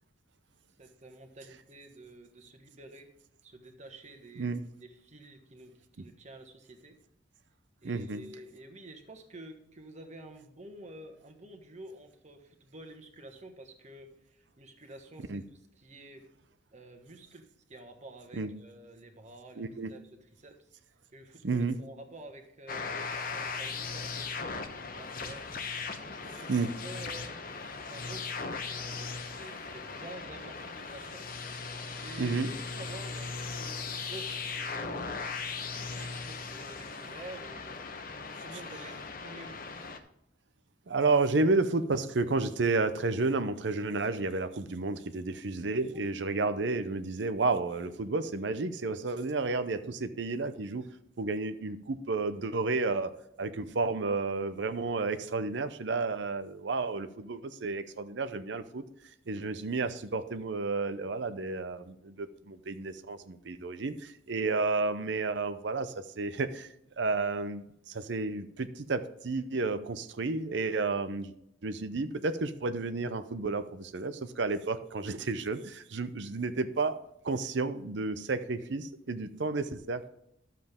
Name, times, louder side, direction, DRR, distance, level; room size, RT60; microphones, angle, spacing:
voice 1, 0.8-3.1 3.4-7.0 7.8-16.3 16.7-20.7 21.1-25.5 26.0-27.4 27.8-31.3 32.0-35.1 35.5-38.1 38.4-39.0 39.2-39.7 52.9-53.0, right 2 dB, 40° right, 5 dB, 1.4 m, -49 dB
voice 2, 7.8-8.2 15.3-15.4 18.4-18.5 19.6-19.9 21.4-21.8 26.5-26.7 32.2-32.5 40.9-50.9 51.2-53.1 53.4-58.8 59.3-66.7 67.0-71.3 71.6-77.0 77.2-80.1, right 3 dB, 65° right, 11 dB, 0.6 m, -31 dB
sound 1, 22.7-40.0, left 4 dB, 50° left, 1.0 m, -38 dB
12.0 x 7.5 x 3.6 m, 0.78 s
head